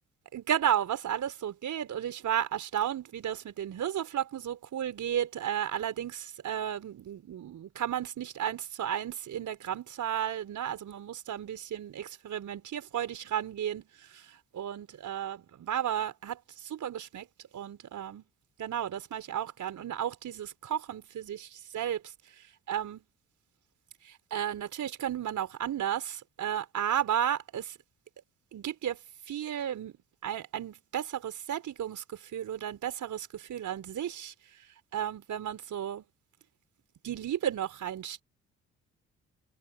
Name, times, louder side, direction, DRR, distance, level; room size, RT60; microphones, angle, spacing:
voice 1, 0.3-17.3 17.5-18.2 18.6-22.0 22.7-23.0 24.0-27.8 28.5-29.0 29.3-29.9 30.2-34.3 34.9-36.0 37.0-38.2, right 10 dB, 50° right, 4.4 m, -33 dB
figure-of-eight pair, 45°, 38 cm